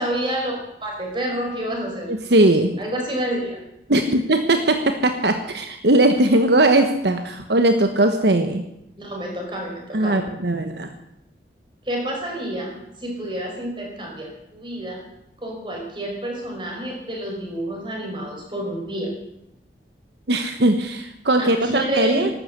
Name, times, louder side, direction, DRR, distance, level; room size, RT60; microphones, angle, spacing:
voice 1, 0.0-2.1 2.8-3.6 9.0-10.2 11.8-15.0 15.4-19.1 21.4-22.3, right 1 dB, 25° right, 0 dB, 5.4 m, -29 dB
voice 2, 2.1-2.7 3.9-8.6 9.9-10.9 20.3-22.3, right 1 dB, 75° right, 7 dB, 1.2 m, -19 dB
13.5 x 12.5 x 8.1 m, 0.82 s
head